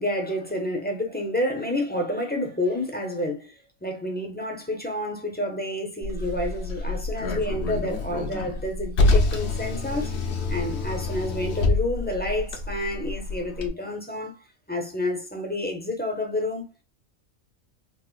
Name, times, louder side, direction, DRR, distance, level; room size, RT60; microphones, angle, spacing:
voice 1, 0.0-3.5 3.8-10.2 10.5-14.4 14.7-16.7, left 1 dB, 10° left, 0.5 m, -29 dB
Car, 6.0-13.7, left 2 dB, 65° left, 0.9 m, -27 dB
4.1 x 2.1 x 2.4 m
omnidirectional pair, 1.3 m